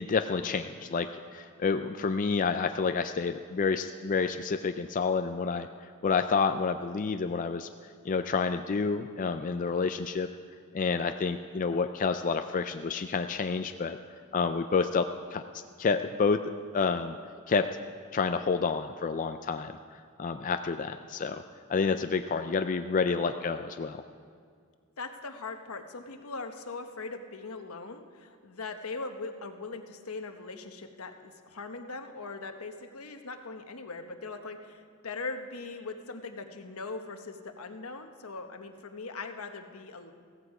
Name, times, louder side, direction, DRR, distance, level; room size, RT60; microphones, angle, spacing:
voice 1, 0.0-5.7 6.0-7.7 8.0-10.3 10.7-14.0 14.3-15.4 15.8-16.4 16.7-17.2 17.5-17.7 18.1-21.4 21.7-24.0, left 5 dB, 35° left, 8 dB, 0.4 m, -29 dB
voice 2, 25.0-40.1, left 3 dB, 80° left, 6 dB, 1.1 m, -40 dB
16.0 x 14.5 x 4.9 m, 2.1 s
head